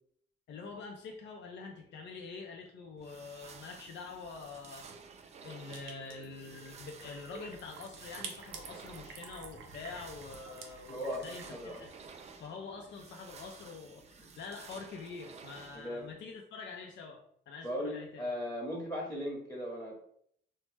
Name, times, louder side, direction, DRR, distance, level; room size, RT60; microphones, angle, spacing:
voice 1, 0.5-11.9 12.4-18.3, left 4 dB, 60° left, 2 dB, 0.5 m, -46 dB
sound 1, 3.0-16.1, right 5 dB, 35° right, 0.4 m, -53 dB
sound 2, 5.7-12.3, right 5 dB, 85° right, 0.5 m, -49 dB
voice 2, 10.9-11.2 11.5-11.8 14.2-14.3 15.7-16.1 17.6-20.0, equal, 20° left, -3 dB, 1.0 m, -37 dB
3.0 x 2.0 x 3.2 m, 0.67 s
cardioid pair, 90°, 20 cm